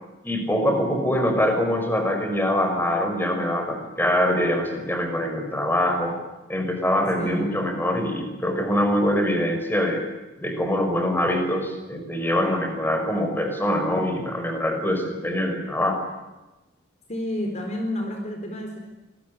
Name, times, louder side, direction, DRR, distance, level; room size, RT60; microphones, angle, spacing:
voice 1, 0.2-6.1 6.5-10.0 10.4-16.0, equal, 10° left, 5 dB, 5.6 m, -24 dB
voice 2, 7.2-7.6 17.1-18.8, left 1 dB, 35° left, 4 dB, 4.1 m, -30 dB
27.0 x 21.5 x 8.5 m, 1.1 s
head